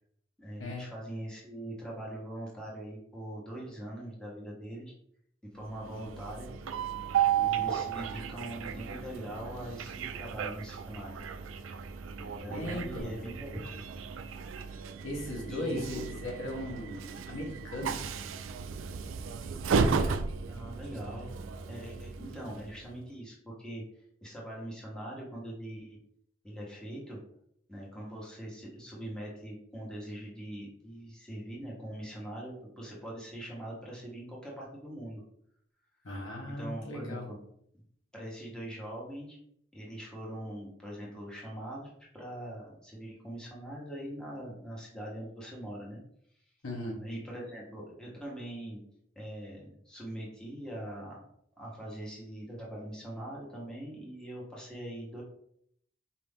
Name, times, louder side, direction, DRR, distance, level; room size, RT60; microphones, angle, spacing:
voice 1, 0.4-4.9 5.5-6.5 7.3-11.2 12.2-13.6 15.5-16.1 20.5-21.3 21.7-23.8 24.2-26.0 26.4-27.2 27.7-35.2 36.6-37.4 38.1-39.4 39.7-46.0 47.0-48.8 49.1-51.2 51.6-55.2, right 1 dB, 5° left, -4 dB, 1.3 m, -42 dB
Train, 5.7-22.9, right 6 dB, 75° right, 0.4 m, -34 dB
voice 2, 12.5-13.1 15.0-18.2 36.0-37.3 46.6-47.0, left 1 dB, 85° left, -1 dB, 1.4 m, -37 dB
4.6 x 2.9 x 3.6 m, 0.69 s
head